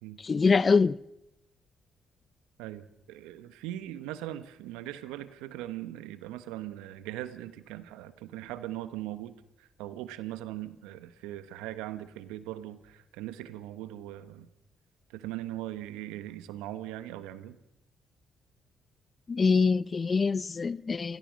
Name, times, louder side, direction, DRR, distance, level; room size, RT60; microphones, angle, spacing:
voice 1, 0.2-1.0 19.3-21.2, left 4 dB, 40° left, 0.7 m, -24 dB
voice 2, 2.6-14.5 15.1-17.6, right 14 dB, 85° right, 1.1 m, -40 dB
30.0 x 15.0 x 6.3 m
hypercardioid pair, 50°, 0 cm